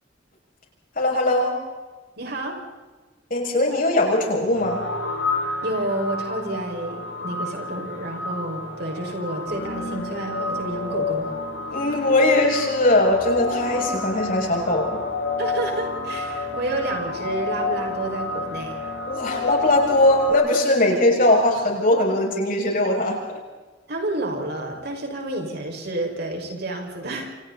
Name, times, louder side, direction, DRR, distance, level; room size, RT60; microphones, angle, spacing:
voice 1, 0.9-1.5 3.3-4.8 11.7-15.0 19.1-23.2, left 1 dB, 45° left, 0 dB, 6.6 m, -20 dB
voice 2, 2.2-2.5 5.6-11.3 15.4-18.8 23.9-27.3, right 2 dB, 55° right, 2 dB, 5.6 m, -29 dB
sound 1, 4.5-20.3, left 3 dB, 85° left, 7.9 m, -29 dB
28.5 x 28.0 x 4.2 m, 1.3 s
head